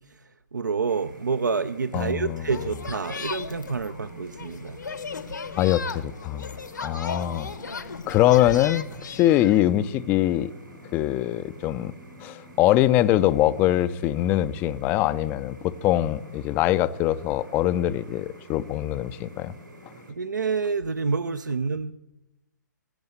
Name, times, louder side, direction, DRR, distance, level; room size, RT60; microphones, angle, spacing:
voice 1, 0.5-4.8 20.1-21.9, right 5 dB, 70° right, 0.6 m, -28 dB
sound 1, 0.9-20.1, equal, 85° right, 5.4 m, -48 dB
voice 2, 1.9-2.5 5.6-6.6 6.8-7.5 8.1-10.5 10.9-11.9 12.2-19.5, left 13 dB, 15° left, 0.4 m, -23 dB
sound 2, 2.5-9.6, left 5 dB, 65° left, 1.1 m, -36 dB
17.0 x 7.0 x 8.0 m
figure-of-eight pair, 125°, 10 cm